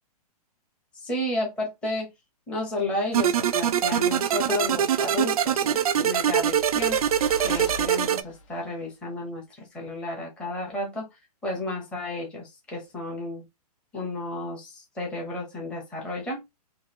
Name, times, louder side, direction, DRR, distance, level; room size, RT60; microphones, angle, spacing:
voice 1, 0.9-2.1 2.5-7.0 7.4-11.1 11.4-13.4 13.9-16.4, left 2 dB, 5° left, 0.8 m, -32 dB
sound 1, 3.1-8.2, right 9 dB, 65° right, 0.4 m, -23 dB
sound 2, 6.3-8.7, left 1 dB, 50° left, 0.9 m, -41 dB
3.1 x 2.8 x 4.1 m
hypercardioid pair, 170°, 20 cm